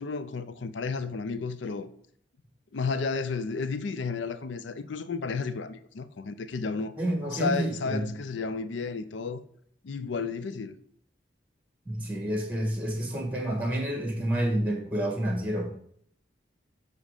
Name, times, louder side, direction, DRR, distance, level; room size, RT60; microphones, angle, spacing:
voice 1, 0.0-1.9 2.7-6.9 7.3-9.4 9.8-10.7, left 4 dB, 80° left, 0.5 m, -32 dB
voice 2, 7.0-8.1 11.8-15.7, right 1 dB, 10° right, 1.5 m, -29 dB
7.4 x 4.0 x 4.9 m
head